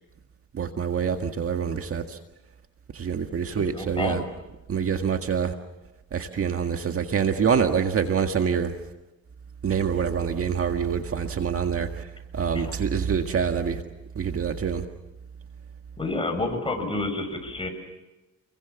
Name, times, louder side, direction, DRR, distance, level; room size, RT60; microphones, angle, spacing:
voice 1, 0.5-2.2 2.9-4.2 4.7-5.5 6.1-8.7 9.6-12.0 12.3-13.8 14.2-14.9, right 7 dB, 50° right, 5 dB, 1.9 m, -26 dB
voice 2, 3.6-4.3 12.5-12.7 16.0-17.7, left 2 dB, 15° left, 5 dB, 7.1 m, -29 dB
29.5 x 22.5 x 7.2 m, 1.0 s
cardioid pair, 90°, 30 cm